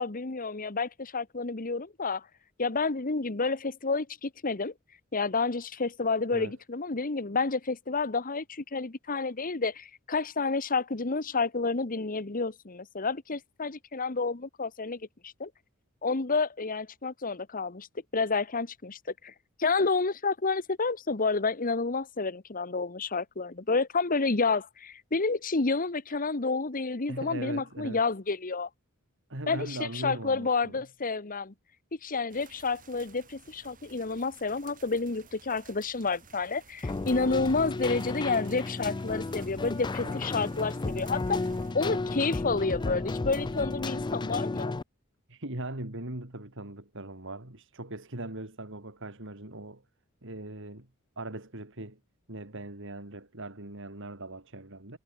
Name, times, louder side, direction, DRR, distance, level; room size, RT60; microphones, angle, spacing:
voice 1, 0.0-2.2 2.6-4.7 5.1-15.5 16.0-17.9 18.1-19.0 19.2-19.3 19.6-28.7 29.5-29.8 30.0-31.5 32.0-41.4 41.7-44.7, left 4 dB, 40° left, 1.2 m, -30 dB
voice 2, 27.1-28.0 29.3-30.8 37.2-37.5 40.0-40.3 45.3-49.8 50.2-50.9 51.2-52.0 52.3-55.0, right 2 dB, 60° right, 3.6 m, -40 dB
sound 1, 32.3-41.7, right 5 dB, 40° right, 4.5 m, -56 dB
Keyboard (musical), 36.8-44.8, left 3 dB, 20° left, 0.4 m, -33 dB
head